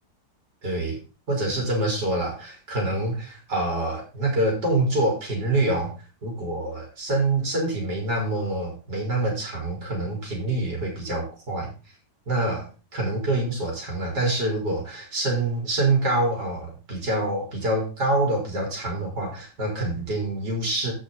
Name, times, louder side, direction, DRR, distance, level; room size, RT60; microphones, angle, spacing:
voice 1, 0.6-1.0 1.3-5.9 6.2-11.7 12.3-20.9, right 2 dB, 85° right, 0 dB, 4.5 m, -26 dB
15.0 x 5.6 x 3.9 m, 0.32 s
omnidirectional pair, 1.8 m